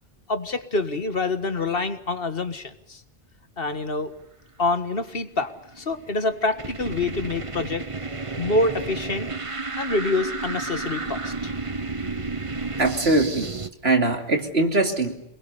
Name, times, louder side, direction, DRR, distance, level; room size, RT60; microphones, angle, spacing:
voice 1, 0.3-3.0 3.6-4.2 4.6-7.8 8.4-9.3 9.8-11.5, left 2 dB, 65° left, 10 dB, 1.8 m, -26 dB
sound 1, 5.6-13.7, right 3 dB, 30° right, 1.3 m, -32 dB
voice 2, 12.8-13.5 13.8-15.1, right 2 dB, 75° right, 4 dB, 3.3 m, -21 dB
27.5 x 21.0 x 6.9 m, 0.79 s
omnidirectional pair, 1.1 m